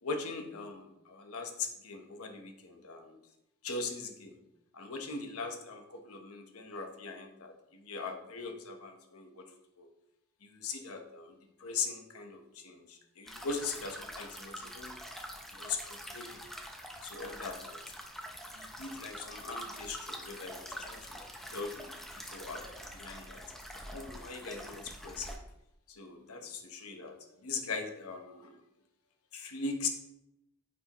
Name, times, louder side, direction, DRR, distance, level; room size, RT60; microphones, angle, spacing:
voice 1, 0.0-3.2 3.6-4.4 4.7-9.4 9.8-9.9 10.4-11.3 11.6-15.0 15.5-16.4 17.0-17.8 18.5-21.0 21.5-22.6 22.9-23.4 23.9-25.4 25.9-28.6 29.3-29.9, left 4 dB, 90° left, 5 dB, 1.0 m, -40 dB
sound 1, 13.3-25.4, equal, ahead, 0.6 m, -45 dB
9.3 x 4.7 x 3.0 m, 0.85 s
head